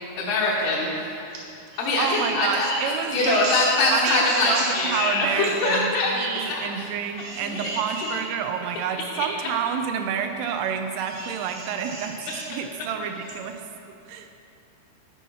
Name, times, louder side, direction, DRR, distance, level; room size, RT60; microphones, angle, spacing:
voice 1, 0.2-1.1 1.8-2.7 3.1-6.1 6.5-6.8 7.4-7.8 9.1-9.2, left 2 dB, 70° left, -7 dB, 2.7 m, -23 dB
sound 1, 1.3-1.4 1.7-5.0 5.4-5.8 7.1-8.2 8.9-9.0 11.0-12.5 13.2-13.3, right 2 dB, 65° right, 2.4 m, -35 dB
voice 2, 2.0-3.5 3.9-12.2 12.5-13.6 14.1-14.3, right 7 dB, 90° right, 6 dB, 3.2 m, -29 dB
12.5 x 5.6 x 4.7 m, 2.7 s
omnidirectional pair, 5.5 m